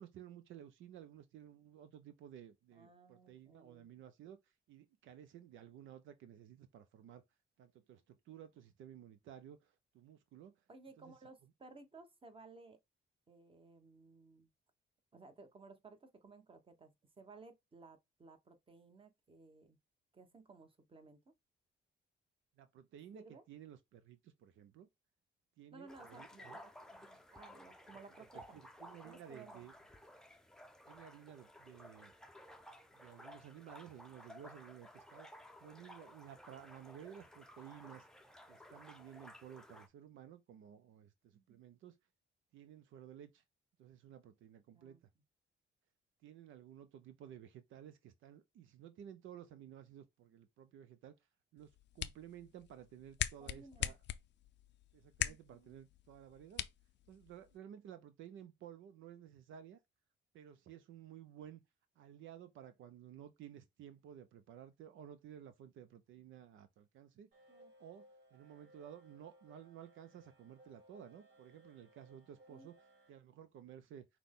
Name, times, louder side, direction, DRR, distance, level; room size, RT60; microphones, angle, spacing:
voice 1, 0.0-7.2 7.6-10.6 11.0-11.2 22.6-24.9 25.6-26.6 28.5-29.7 30.9-32.1 32.9-35.3 35.6-38.1 38.5-42.0 42.5-43.4 43.8-45.0 46.2-51.2 51.5-54.0 54.9-56.7 57.1-59.8 60.3-61.6 62.0-67.3 67.8-72.8 73.1-74.1, right 10 dB, 80° right, 0.6 m, -55 dB
voice 2, 2.7-3.9 10.7-12.8 13.3-14.5 15.1-19.8 20.1-21.3 23.1-23.4 25.7-28.4 29.0-29.7 41.3-41.6 44.7-45.0 53.4-53.9 55.2-55.8 67.5-67.7 72.5-72.7, right 3 dB, 25° right, 1.1 m, -58 dB
sound 1, 25.9-39.9, left 1 dB, 5° left, 0.6 m, -56 dB
sound 2, 51.6-57.6, left 12 dB, 65° left, 0.4 m, -43 dB
sound 3, 67.3-73.1, right 1 dB, 60° right, 1.7 m, -64 dB
5.9 x 2.2 x 3.6 m
cardioid pair, 90°, 20 cm